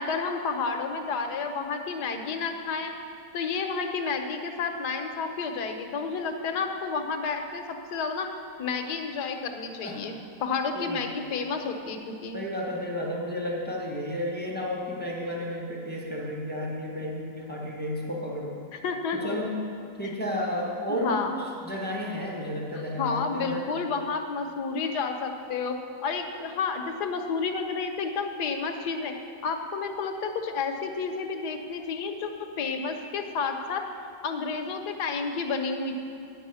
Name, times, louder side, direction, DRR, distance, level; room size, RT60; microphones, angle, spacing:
voice 1, 0.0-2.9 3.3-8.3 8.6-12.4 18.7-19.4 20.9-21.3 23.0-25.8 26.0-29.1 29.4-33.9 34.2-36.0, left 5 dB, 65° left, 5 dB, 1.3 m, -30 dB
voice 2, 12.3-18.6 19.1-19.6 20.0-23.7, left 1 dB, 5° left, -2 dB, 1.1 m, -32 dB
10.0 x 5.5 x 8.2 m, 2.7 s
omnidirectional pair, 2.0 m